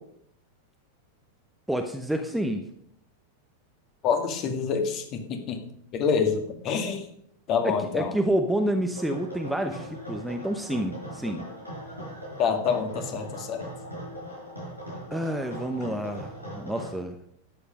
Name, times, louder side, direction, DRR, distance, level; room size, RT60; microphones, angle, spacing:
voice 1, 1.7-2.7 7.6-11.4 15.1-17.2, right 1 dB, 5° right, 5 dB, 0.9 m, -29 dB
voice 2, 4.0-5.6 5.9-7.1 7.5-8.1 12.4-13.6, left 6 dB, 35° left, 5 dB, 2.0 m, -26 dB
sound 1, 8.9-17.0, equal, 90° left, 5.6 m, -40 dB
13.0 x 8.9 x 5.2 m, 0.71 s
figure-of-eight pair, 90°, 0 cm